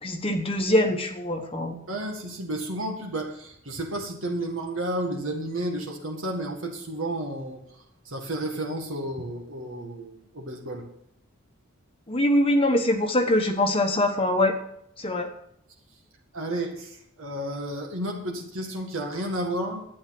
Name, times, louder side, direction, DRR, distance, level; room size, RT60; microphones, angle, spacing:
voice 1, 0.0-1.8 12.1-14.5 15.0-15.3, left 1 dB, 25° left, 4 dB, 1.2 m, -23 dB
voice 2, 1.9-10.8 16.3-19.9, right 1 dB, 70° right, 1 dB, 1.9 m, -32 dB
11.5 x 9.1 x 6.0 m, 0.73 s
head